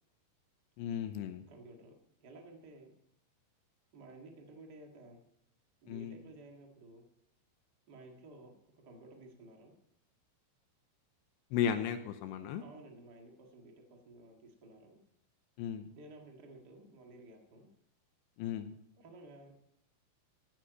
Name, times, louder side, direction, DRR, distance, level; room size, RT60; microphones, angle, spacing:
voice 1, 0.8-1.4 5.9-6.2 11.5-12.6 15.6-15.9 18.4-18.7, left 8 dB, 80° left, 9 dB, 2.8 m, -35 dB
voice 2, 1.5-1.9 2.2-2.9 3.9-5.2 5.8-7.1 7.9-8.5 8.8-9.7 12.6-15.0 15.9-17.7 19.0-19.5, right 2 dB, 85° right, 1 dB, 0.9 m, -54 dB
15.5 x 9.1 x 5.2 m, 0.74 s
omnidirectional pair, 5.3 m